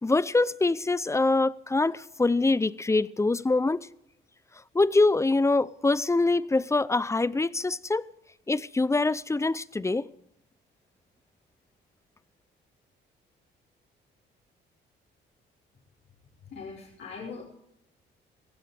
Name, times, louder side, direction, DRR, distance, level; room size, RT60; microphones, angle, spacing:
voice 1, 0.0-3.9 4.7-8.1 8.5-10.1, left 3 dB, 15° left, 0.5 m, -24 dB
voice 2, 16.5-17.4, left 5 dB, 70° left, 4.7 m, -40 dB
19.0 x 15.5 x 3.4 m
cardioid pair, 90°, 20 cm